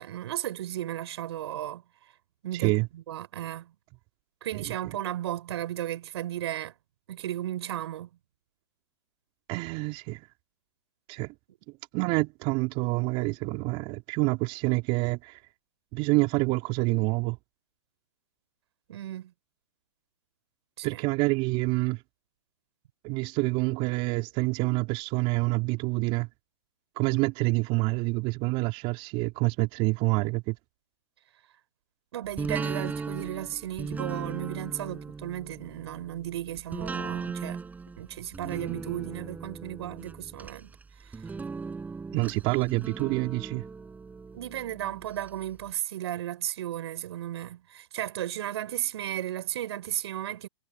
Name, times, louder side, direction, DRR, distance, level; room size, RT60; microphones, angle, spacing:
voice 1, 0.0-1.8 2.4-3.7 4.4-6.7 7.1-8.1 18.9-19.3 20.8-21.0 32.1-37.6 38.0-40.7 41.0-41.1 44.3-50.5, right 12 dB, 60° right, 6.0 m, -34 dB
voice 2, 2.5-2.9 4.5-4.7 9.5-10.2 11.1-11.3 11.9-15.4 15.9-17.4 20.8-22.0 23.0-26.3 27.0-30.6 42.1-43.6, right 25 dB, 35° right, 4.3 m, -27 dB
sound 1, 32.4-45.3 45.7-45.8, right 4 dB, 10° right, 7.8 m, -38 dB
hypercardioid pair, 130°, 15 cm